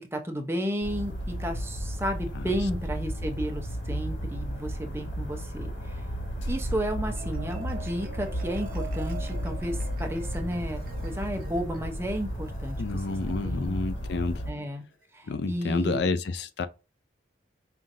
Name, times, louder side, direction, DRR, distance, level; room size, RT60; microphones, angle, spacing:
voice 1, 0.0-6.0 6.5-13.8 14.5-14.8 15.1-16.1, equal, 15° right, 0.6 m, -33 dB
sound 1, 0.8-14.5, equal, 80° left, 1.4 m, -33 dB
Marimba xylophone, 7.0-13.5, right 5 dB, 50° right, 0.7 m, -46 dB
voice 2, 12.8-14.4 15.3-16.7, left 3 dB, 60° left, 0.4 m, -29 dB
5.6 x 2.5 x 2.6 m
head